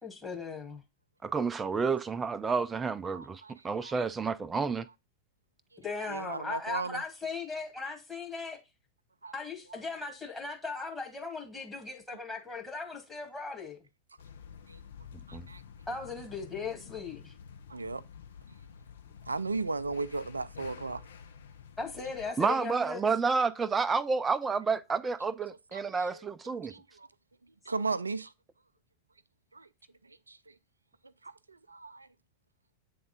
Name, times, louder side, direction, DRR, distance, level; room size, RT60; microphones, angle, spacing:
voice 1, 0.0-0.8 5.8-8.6 9.3-13.8 15.9-17.3 21.8-23.0, left 4 dB, 10° left, 1.7 m, -38 dB
voice 2, 1.2-4.9 15.3-15.5 22.4-26.7, right 5 dB, 15° right, 0.4 m, -30 dB
voice 3, 3.1-3.5 3.8-3.9 6.1-7.0 9.2-9.3 14.7-14.8 15.3-15.6 17.7-18.0 19.3-21.0 25.7-25.8 26.7-27.1 27.7-28.3 29.5-29.7 30.3-30.4 31.2-32.1, right 3 dB, 80° right, 0.4 m, -35 dB
sound 1, 14.2-22.3, left 7 dB, 65° left, 0.6 m, -50 dB
8.6 x 3.6 x 3.7 m
figure-of-eight pair, 90°, 0 cm